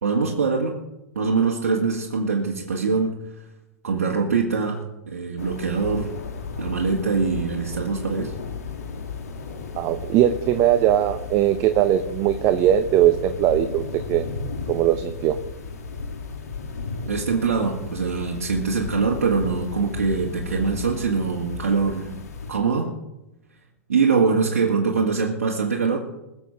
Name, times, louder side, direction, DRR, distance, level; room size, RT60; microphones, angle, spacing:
voice 1, 0.0-0.8 1.2-3.1 3.8-4.8 5.1-6.1 6.6-8.3 17.1-22.1 22.5-22.9 23.9-26.0, right 5 dB, 90° right, -2 dB, 2.0 m, -23 dB
sound 1, 5.4-22.5, left 5 dB, 90° left, 2.5 m, -34 dB
voice 2, 9.8-14.3 14.7-15.3, right 11 dB, 40° right, 9 dB, 0.9 m, -20 dB
21.5 x 7.2 x 6.1 m, 0.97 s
hypercardioid pair, 120°, 8 cm